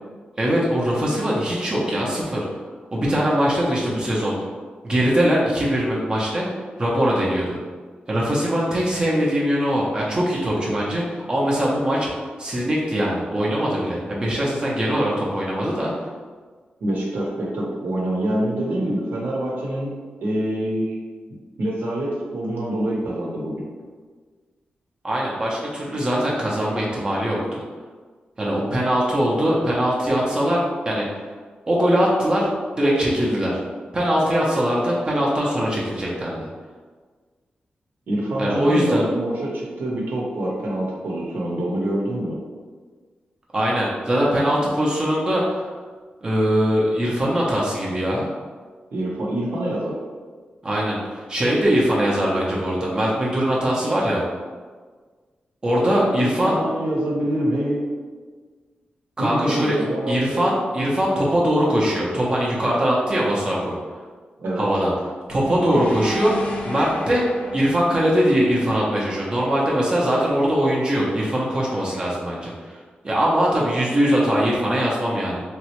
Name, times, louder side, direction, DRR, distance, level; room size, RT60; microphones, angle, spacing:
voice 1, 0.4-2.5 2.9-4.3 4.8-6.5 6.8-7.6 8.1-15.9 25.0-27.6 28.4-31.2 31.7-32.5 32.7-33.6 33.9-36.5 38.4-39.1 43.5-45.7 46.2-48.3 50.6-54.2 55.6-56.6 59.2-59.8 60.1-63.8 64.6-64.9 65.3-66.4 66.6-67.2 67.5-72.8 73.0-75.4, equal, 25° right, -5 dB, 0.5 m, -21 dB
voice 2, 16.8-19.9 20.2-21.0 21.6-23.5 38.1-42.4 48.9-50.0 55.8-57.8 59.2-60.4 64.4-64.7, right 1 dB, 80° right, -4 dB, 0.8 m, -25 dB
sound 1, 65.3-69.5, left 2 dB, 45° left, 0.5 m, -34 dB
3.6 x 2.1 x 2.9 m, 1.5 s
wide cardioid pair, 150°, 3 cm